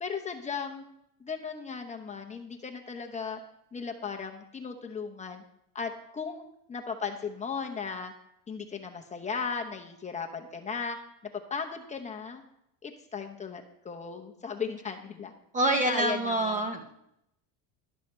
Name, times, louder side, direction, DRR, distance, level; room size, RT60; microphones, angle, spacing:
voice 1, 0.0-0.8 1.2-3.4 3.7-5.4 5.7-8.1 8.5-11.0 11.3-12.4 12.8-15.3 15.7-16.7, left 5 dB, 15° left, 3 dB, 0.8 m, -36 dB
voice 2, 15.5-17.0, right 1 dB, 15° right, 5 dB, 0.7 m, -27 dB
12.0 x 7.0 x 4.4 m, 0.77 s
cardioid pair, 145°, 46 cm